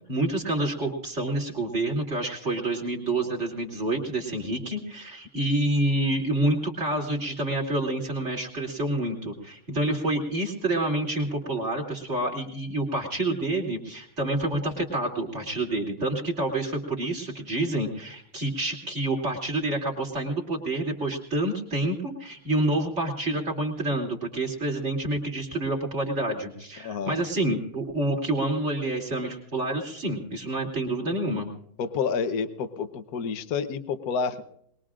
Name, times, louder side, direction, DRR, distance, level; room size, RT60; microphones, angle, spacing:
voice 1, 0.1-31.5, right 1 dB, 30° right, 0 dB, 3.2 m, -28 dB
voice 2, 26.8-27.2 31.8-34.4, left 5 dB, 55° left, 9 dB, 1.3 m, -29 dB
22.5 x 21.5 x 2.5 m, 0.71 s
omnidirectional pair, 2.3 m